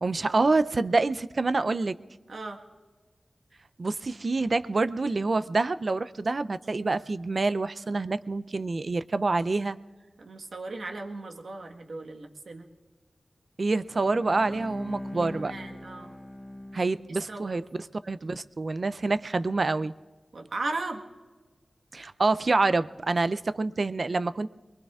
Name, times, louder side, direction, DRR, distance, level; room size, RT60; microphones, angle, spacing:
voice 1, 0.0-2.0 3.8-9.8 13.6-15.5 16.7-17.6 18.0-19.9 21.9-24.5, right 3 dB, 55° right, 14 dB, 0.4 m, -27 dB
voice 2, 2.3-2.6 10.2-12.7 15.1-16.1 17.3-17.6 20.3-21.0, right 3 dB, 80° right, 3 dB, 1.3 m, -37 dB
Bowed string instrument, 13.9-17.4, left 1 dB, 20° left, 1.2 m, -41 dB
23.0 x 21.5 x 2.4 m, 1.3 s
wide cardioid pair, 75°, 0 cm